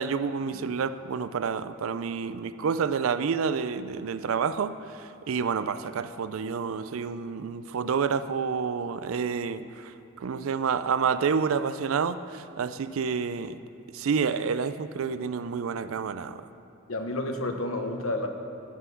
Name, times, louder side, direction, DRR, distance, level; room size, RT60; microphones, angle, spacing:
voice 1, 0.0-13.6 13.9-16.4, right 6 dB, 80° right, 13 dB, 0.4 m, -29 dB
voice 2, 16.9-18.3, left 2 dB, 90° left, 5 dB, 1.0 m, -30 dB
15.0 x 5.7 x 6.2 m, 3.0 s
head